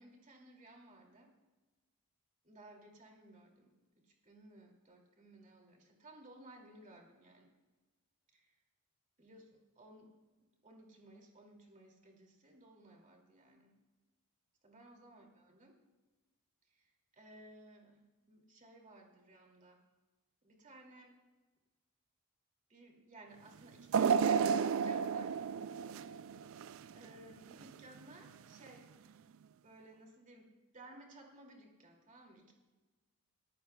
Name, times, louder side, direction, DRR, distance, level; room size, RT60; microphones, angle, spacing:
voice 1, 0.0-1.3 2.4-7.5 8.3-8.6 9.2-9.5 9.8-10.1 10.6-13.7 14.6-15.8 16.7-19.8 20.4-21.2 22.7-25.4 26.9-28.9 29.6-32.5, right 1 dB, 35° right, 1 dB, 2.4 m, -58 dB
sound 1, 23.9-27.1 27.5-27.6 28.7-28.8, right 6 dB, 65° right, 0.3 m, -32 dB
24.0 x 13.5 x 2.3 m, 1.2 s
head